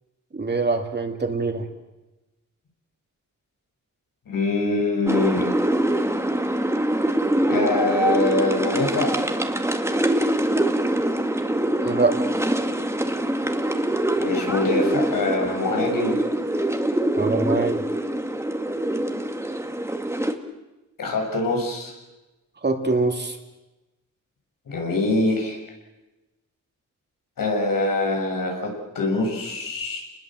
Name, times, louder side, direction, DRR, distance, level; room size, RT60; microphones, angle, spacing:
voice 1, 0.3-1.6 11.8-12.2 17.2-17.8 22.6-23.4, right 3 dB, 30° right, 5 dB, 2.7 m, -23 dB
voice 2, 4.3-5.5 7.5-9.1 14.2-16.2 21.0-21.9 24.7-25.6 27.4-28.7 29.0-30.0, left 2 dB, 90° left, 1 dB, 7.1 m, -24 dB
sound 1, 5.1-20.3, right 1 dB, 10° right, 1.9 m, -24 dB
29.5 x 20.5 x 7.7 m, 1.1 s
wide cardioid pair, 120°, 33 cm